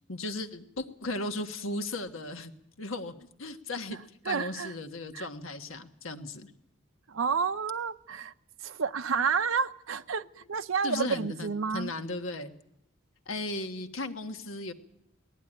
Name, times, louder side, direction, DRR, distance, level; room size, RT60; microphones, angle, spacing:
voice 1, 0.1-2.5 2.8-4.0 4.2-6.5 10.8-12.5 13.3-14.7, left 2 dB, 90° left, 1.4 m, -36 dB
voice 2, 4.3-4.7 5.1-5.3 7.1-8.3 8.6-11.9, right 6 dB, 85° right, 0.7 m, -30 dB
20.0 x 14.0 x 9.9 m
head